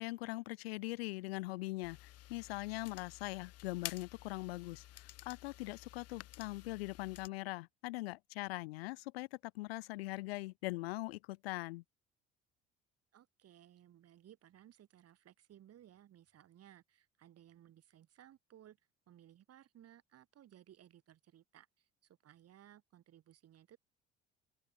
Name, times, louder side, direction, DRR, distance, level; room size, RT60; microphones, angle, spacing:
voice 1, 0.0-11.8, left 21 dB, 80° left, 1.1 m, -41 dB
sound 1, 1.8-7.3, left 15 dB, 55° left, 1.0 m, -51 dB
voice 2, 13.1-18.8 19.1-23.8, right 11 dB, 55° right, 3.7 m, -61 dB
open air
hypercardioid pair, 60°, 30 cm